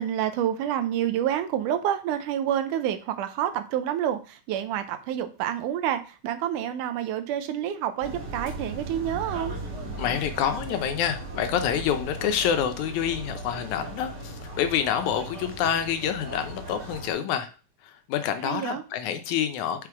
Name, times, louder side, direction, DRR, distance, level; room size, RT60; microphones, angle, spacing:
voice 1, 0.0-9.6 18.4-18.8, right 10 dB, 85° right, 10 dB, 2.2 m, -28 dB
sound 1, 8.0-17.1, right 2 dB, 35° right, 2.3 m, -37 dB
voice 2, 10.0-17.5 17.8-19.9, left 9 dB, 75° left, 8 dB, 2.1 m, -27 dB
5.8 x 4.9 x 4.7 m, 0.35 s
omnidirectional pair, 3.6 m